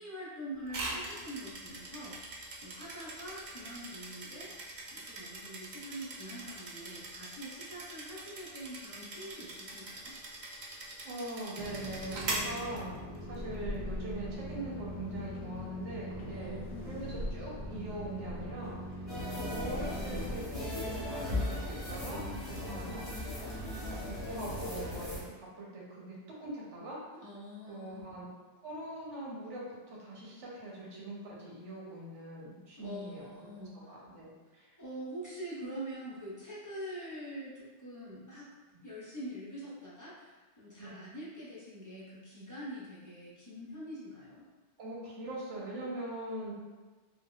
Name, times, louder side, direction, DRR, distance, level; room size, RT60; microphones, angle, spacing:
voice 1, 0.0-2.2 2.6-4.5 4.9-10.1 16.3-16.9 27.2-28.1 32.8-34.0 34.8-38.5 38.8-44.4, equal, 20° left, -8 dB, 0.5 m, -44 dB
sound 1, 0.7-13.4, right 2 dB, 55° right, 0.5 m, -42 dB
voice 2, 11.0-22.2 22.5-23.4 23.7-27.0 27.7-28.3 28.6-33.3 33.9-34.7 40.8-41.0 44.8-46.5, right 1 dB, 85° right, -5 dB, 1.1 m, -42 dB
sound 2, 11.6-20.4, equal, 65° left, 0.7 m, -40 dB
sound 3, 19.1-25.2, left 1 dB, ahead, 0.8 m, -37 dB
3.6 x 2.2 x 2.3 m, 1.3 s
omnidirectional pair, 1.2 m